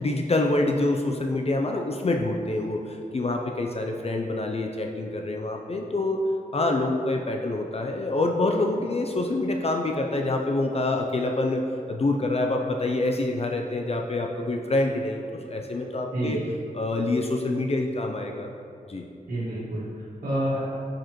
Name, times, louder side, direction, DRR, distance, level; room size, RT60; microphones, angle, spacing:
voice 1, 0.0-6.2 6.5-11.6 11.9-16.4 16.7-18.5 18.9-19.1, left 2 dB, 45° left, 2 dB, 0.5 m, -26 dB
voice 2, 19.3-20.6, right 1 dB, 75° right, -11 dB, 1.7 m, -29 dB
9.1 x 4.9 x 3.0 m, 2.5 s
wide cardioid pair, 95°, 15 cm